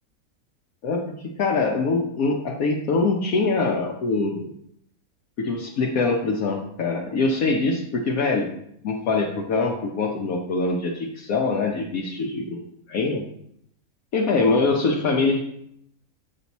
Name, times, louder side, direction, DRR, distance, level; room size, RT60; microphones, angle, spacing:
voice 1, 0.8-4.5 5.4-8.6 8.8-13.3 14.1-15.4, left 3 dB, 70° left, -1 dB, 1.2 m, -24 dB
7.7 x 5.8 x 4.1 m, 0.73 s
omnidirectional pair, 1.6 m